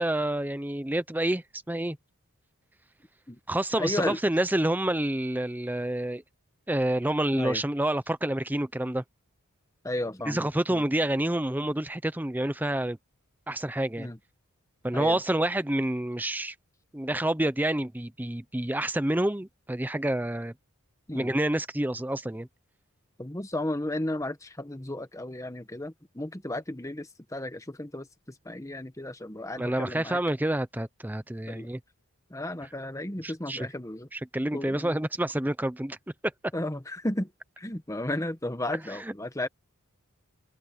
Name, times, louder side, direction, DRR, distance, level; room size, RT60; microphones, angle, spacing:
voice 1, 0.0-2.0 3.5-6.2 6.7-9.0 10.3-13.0 13.5-14.1 14.8-16.5 16.9-20.5 21.2-22.5 29.6-31.8 33.2-33.7 34.1-36.0, right 1 dB, 10° right, 0.6 m, -28 dB
voice 2, 3.8-4.2 7.3-7.6 9.8-10.8 14.0-14.2 14.9-15.2 21.1-21.3 23.2-30.2 31.5-31.7 32.3-34.1 34.5-34.9 36.5-37.3 37.6-39.5, left 1 dB, 15° left, 1.1 m, -34 dB
head